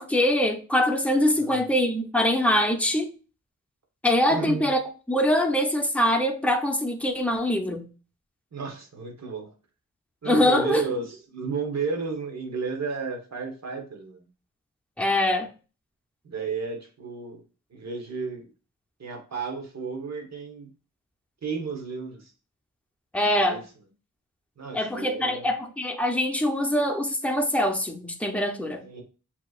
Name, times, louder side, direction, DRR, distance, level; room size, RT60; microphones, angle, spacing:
voice 1, 0.0-3.1 4.0-4.8 5.1-7.9 10.2-10.8 15.0-15.5 23.1-23.6 24.7-28.8, left 1 dB, 5° left, 0.8 m, -23 dB
voice 2, 1.3-1.6 4.3-4.7 8.5-9.5 10.2-14.3 16.2-17.4 17.7-18.5 19.0-20.7 21.4-22.3 23.4-23.6 24.6-25.5 28.8-29.0, right 4 dB, 55° right, 1.2 m, -32 dB
7.2 x 3.0 x 2.5 m
wide cardioid pair, 105°, 32 cm